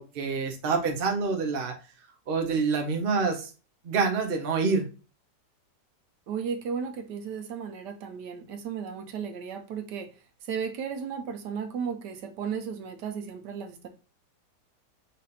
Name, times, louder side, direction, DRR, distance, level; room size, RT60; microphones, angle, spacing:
voice 1, 0.0-1.7 2.3-3.5 3.8-4.9, right 4 dB, 55° right, 3 dB, 0.6 m, -27 dB
voice 2, 6.3-10.1 10.5-13.9, right 6 dB, 75° right, 6 dB, 1.3 m, -34 dB
5.3 x 2.5 x 4.1 m, 0.33 s
omnidirectional pair, 1.9 m